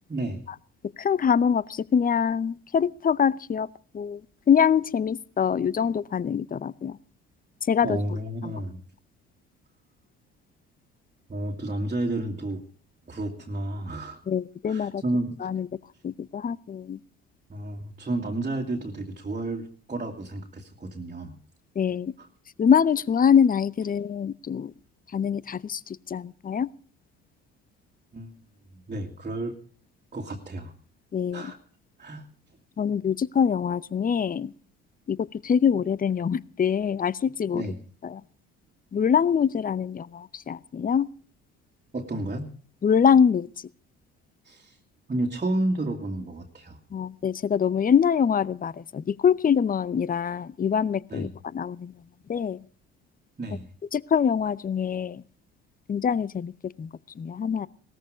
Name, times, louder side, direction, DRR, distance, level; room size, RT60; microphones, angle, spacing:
voice 1, 0.1-0.4 7.8-8.8 11.3-12.6 13.1-14.2 14.7-15.4 17.5-21.4 22.2-22.3 28.1-28.4 28.7-29.6 30.1-30.7 31.3-31.6 32.0-32.3 37.5-37.8 41.9-42.5 44.4-44.8 45.1-46.8 51.1-51.3 53.4-53.7, right 1 dB, 25° right, 0 dB, 2.2 m, -31 dB
voice 2, 1.0-3.7 3.9-4.2 4.5-7.0 7.7-8.0 8.4-8.5 14.3-15.0 15.4-15.7 16.0-17.0 21.8-22.1 22.6-24.7 25.1-26.7 31.1-31.5 32.8-34.5 35.1-37.6 38.0-38.2 38.9-41.1 42.8-43.5 46.9-51.9 52.3-52.6 53.9-55.2 55.9-56.9 57.2-57.7, left 7 dB, 30° left, 22 dB, 0.7 m, -24 dB
17.5 x 13.5 x 4.9 m, 0.41 s
supercardioid pair, 65°, 30 cm